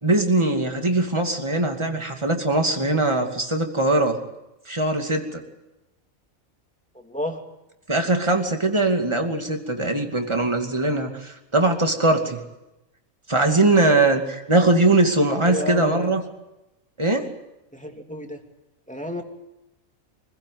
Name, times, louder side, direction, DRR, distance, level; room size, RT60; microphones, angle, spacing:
voice 1, 0.0-4.2 4.7-5.4 7.9-12.4 13.3-16.2 17.0-17.2, right 2 dB, 20° right, 4 dB, 2.6 m, -21 dB
voice 2, 6.9-7.4 15.5-16.1 17.7-18.4 18.9-19.2, equal, 5° left, 3 dB, 2.7 m, -31 dB
25.5 x 15.5 x 9.4 m, 0.95 s
omnidirectional pair, 1.5 m